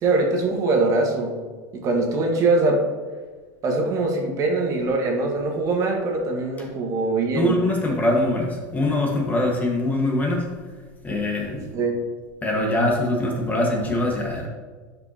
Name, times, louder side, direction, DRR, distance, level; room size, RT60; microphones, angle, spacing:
voice 1, 0.0-1.3 1.7-2.8 3.6-7.6 11.7-12.0, right 3 dB, 35° right, 1 dB, 1.5 m, -22 dB
voice 2, 7.3-10.5 11.0-11.7 12.4-14.5, left 1 dB, 20° left, 0 dB, 1.5 m, -23 dB
10.5 x 5.3 x 2.9 m, 1.4 s
supercardioid pair, 130°, 9 cm